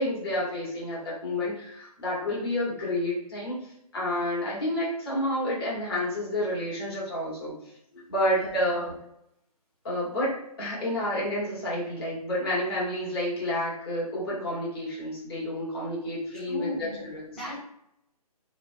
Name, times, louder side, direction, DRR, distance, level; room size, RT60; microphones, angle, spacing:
voice 1, 0.0-7.5 7.9-8.9 9.8-17.2, left 1 dB, 40° left, -6 dB, 1.3 m, -30 dB
voice 2, 8.3-8.9 16.3-17.0 17.3-17.6, left 1 dB, ahead, -12 dB, 0.3 m, -36 dB
2.8 x 2.1 x 2.6 m, 0.77 s
figure-of-eight pair, 150°, 20 cm